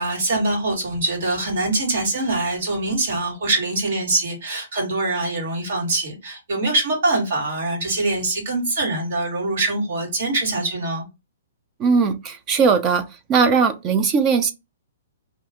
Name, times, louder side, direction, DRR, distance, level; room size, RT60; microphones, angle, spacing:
voice 1, 0.0-11.1, right 2 dB, 55° right, 1.8 m, -23 dB
voice 2, 11.8-13.0 13.3-14.5, right 5 dB, 20° right, 0.4 m, -18 dB
2.7 x 2.4 x 3.5 m
hypercardioid pair, 165°, 0 cm